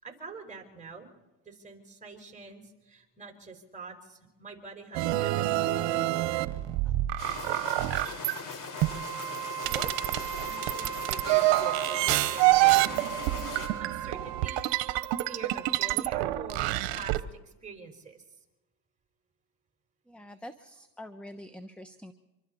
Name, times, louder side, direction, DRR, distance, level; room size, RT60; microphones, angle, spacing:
voice 1, 0.0-1.1 1.4-6.2 8.6-9.1 9.6-9.9 10.4-14.7 15.2-18.2, right 4 dB, 15° right, 3 dB, 4.7 m, -45 dB
sound 1, 4.9-8.4 8.8-17.2, right 17 dB, 70° right, 1.1 m, -27 dB
sound 2, 7.2-13.7, left 4 dB, 45° left, 5.1 m, -40 dB
Wind instrument woodwind instrument, 8.7-16.2, right 11 dB, 50° right, 1.2 m, -39 dB
voice 2, 20.1-22.1, left 1 dB, 5° left, 9 dB, 1.1 m, -45 dB
25.5 x 24.5 x 4.2 m, 1.1 s
supercardioid pair, 95°, 45 cm